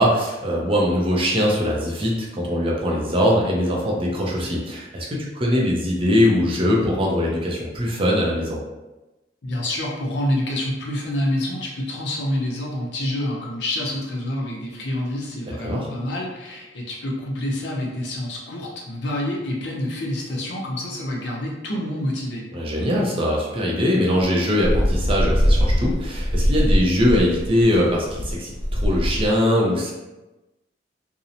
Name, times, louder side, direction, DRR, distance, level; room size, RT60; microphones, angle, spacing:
voice 1, 0.0-8.6 15.6-15.9 22.5-29.9, equal, 30° right, -3 dB, 0.4 m, -21 dB
voice 2, 9.4-22.4, left 1 dB, 65° left, -2 dB, 0.6 m, -27 dB
sound 1, 24.1-29.3, equal, 75° right, 1.1 m, -21 dB
2.7 x 2.0 x 2.5 m, 1.1 s
head